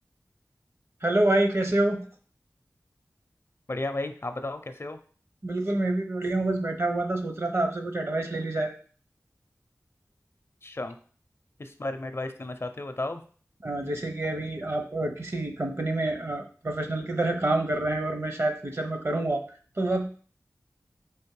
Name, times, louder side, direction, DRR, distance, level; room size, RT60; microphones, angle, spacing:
voice 1, 1.0-2.0 5.4-8.7 13.6-19.4 19.8-20.0, right 2 dB, 50° right, 4 dB, 0.8 m, -27 dB
voice 2, 3.7-5.0 10.6-11.0 11.6-13.2 13.8-14.0, left 2 dB, 45° left, 8 dB, 0.5 m, -33 dB
3.5 x 3.1 x 4.6 m, 0.43 s
wide cardioid pair, 55°, 6 cm